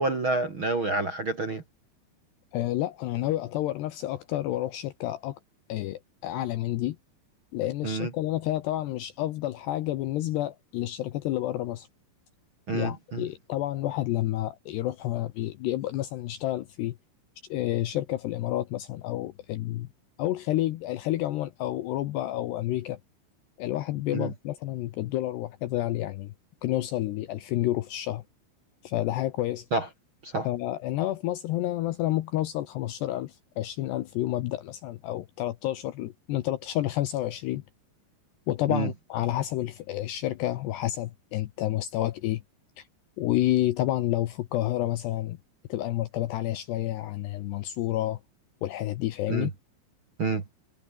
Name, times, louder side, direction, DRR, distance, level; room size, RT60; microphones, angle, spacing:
voice 1, 0.0-1.6 7.8-8.1 12.7-13.2 24.1-24.3 29.7-29.9 30.2-30.5 38.7-38.9 49.3-49.5 50.2-50.4, right 3 dB, 35° right, 2.2 m, -28 dB
voice 2, 2.5-5.4 5.7-7.0 7.5-11.9 12.7-17.0 17.5-19.9 20.2-23.0 23.6-26.3 26.6-28.2 28.8-29.7 30.4-37.6 38.5-42.4 42.8-42.9 43.2-45.4 45.7-48.2 48.6-49.5, left 14 dB, 75° left, 2.7 m, -29 dB
omnidirectional pair, 5.8 m